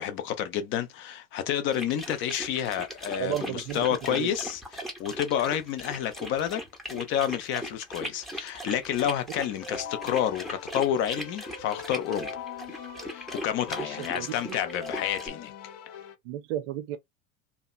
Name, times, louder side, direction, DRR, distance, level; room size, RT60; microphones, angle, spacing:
voice 1, 0.0-6.6 6.9-12.4 13.1-15.5, left 10 dB, 30° left, 0.4 m, -29 dB
sound 1, 1.7-15.3, equal, ahead, 0.7 m, -39 dB
voice 2, 3.2-4.3 13.8-14.6 16.2-17.0, right 12 dB, 50° right, 0.6 m, -34 dB
Keyboard (musical), 9.6-16.1, left 7 dB, 55° left, 0.7 m, -41 dB
2.7 x 2.1 x 2.2 m
figure-of-eight pair, 80°, 44 cm